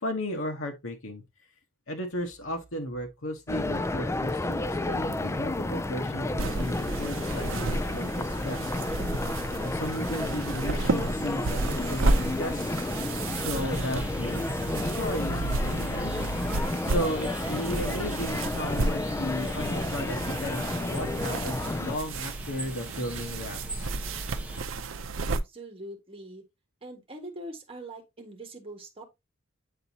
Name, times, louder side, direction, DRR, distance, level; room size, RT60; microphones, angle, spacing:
voice 1, 0.0-1.2 1.9-8.7 9.6-12.9 13.3-14.5 14.8-16.3 16.8-23.9, equal, 85° left, 1.2 m, -35 dB
sound 1, 3.5-22.0, left 2 dB, 15° left, 0.4 m, -31 dB
sound 2, 6.4-25.4, right 3 dB, 75° right, 0.6 m, -32 dB
sound 3, 12.0-24.6, right 1 dB, 5° right, 1.0 m, -43 dB
voice 2, 25.2-26.4 26.8-29.0, right 1 dB, 30° right, 1.7 m, -43 dB
9.0 x 4.1 x 2.8 m
head